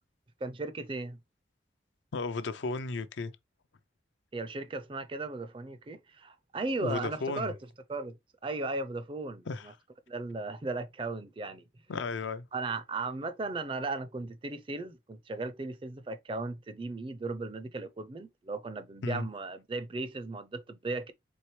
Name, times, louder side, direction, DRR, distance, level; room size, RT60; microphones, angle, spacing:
voice 1, 0.4-1.2 4.3-7.6 7.9-8.2 8.4-9.7 10.1-11.6 12.5-21.1, right 3 dB, 25° right, 0.4 m, -36 dB
voice 2, 2.1-3.3 6.8-7.5 9.5-9.7 11.9-12.5 19.0-19.3, left 3 dB, 75° left, 0.5 m, -34 dB
4.4 x 3.3 x 3.1 m
head